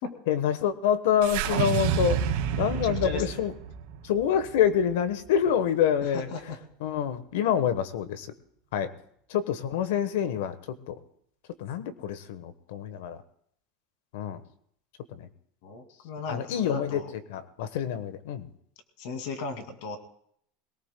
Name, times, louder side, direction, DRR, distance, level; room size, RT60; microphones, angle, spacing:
voice 1, 0.3-2.2 2.6-3.5 4.0-6.3 6.8-8.3 8.7-8.9 9.3-10.5 10.9-11.0 11.6-13.2 14.1-14.4 15.1-15.3 16.3-17.0 17.3-18.5, left 9 dB, 75° left, 13 dB, 1.1 m, -26 dB
sound 1, 1.2-5.5, right 8 dB, 70° right, 1.9 m, -30 dB
voice 2, 2.7-3.4 6.0-6.6 15.6-17.1 19.0-20.0, left 3 dB, 60° left, 6 dB, 2.3 m, -36 dB
22.0 x 18.0 x 2.2 m, 0.68 s
supercardioid pair, 160°, 0 cm